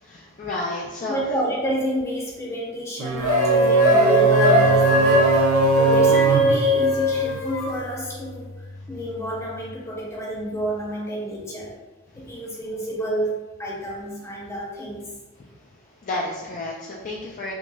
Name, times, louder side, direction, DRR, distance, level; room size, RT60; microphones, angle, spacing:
voice 1, 0.0-1.2 12.2-12.4 16.0-17.5, left 2 dB, 35° left, -3 dB, 0.4 m, -31 dB
voice 2, 1.1-5.3 5.7-11.8 12.1-15.1, right 1 dB, 15° left, -4 dB, 0.8 m, -29 dB
sound 1, 3.0-7.5, right 4 dB, 85° right, 0.4 m, -24 dB
sound 2, 3.2-7.7, equal, 85° left, 0.6 m, -18 dB
sound 3, 4.6-9.7, left 1 dB, 65° right, 1.1 m, -38 dB
5.8 x 2.2 x 2.2 m, 1.2 s
head